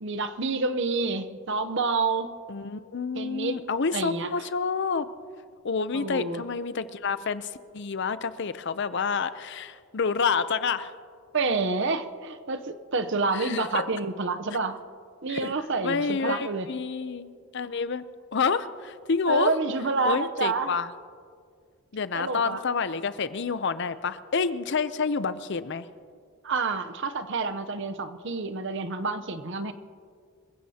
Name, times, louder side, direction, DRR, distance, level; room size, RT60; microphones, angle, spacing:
voice 1, 0.0-2.3 3.1-3.6 3.9-4.5 5.9-6.4 11.3-14.8 15.2-16.7 19.3-20.7 22.1-22.6 26.4-29.7, right 3 dB, 55° right, 10 dB, 0.7 m, -28 dB
voice 2, 2.5-5.1 5.6-10.9 13.3-13.9 15.3-15.5 15.8-18.0 18.3-19.5 20.0-20.9 21.9-25.9, left 5 dB, 50° left, 13 dB, 0.5 m, -28 dB
26.0 x 16.0 x 2.8 m, 2.1 s
head